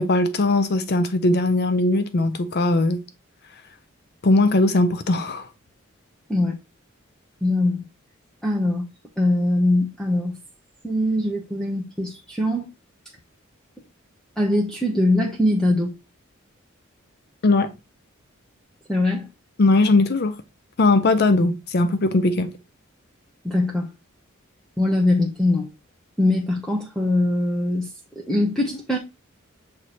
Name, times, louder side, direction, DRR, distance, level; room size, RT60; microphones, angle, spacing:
voice 1, 0.0-3.0 4.2-5.5 17.4-17.7 19.6-20.4 20.8-22.5, left 2 dB, 50° left, 0.5 m, -19 dB
voice 2, 7.4-7.8 8.4-8.9 9.2-10.4 10.8-12.7 14.4-15.9 18.9-19.3 23.4-23.9 24.8-25.7 26.2-27.9 28.2-29.0, left 1 dB, 5° left, 0.9 m, -22 dB
7.6 x 3.1 x 4.2 m
head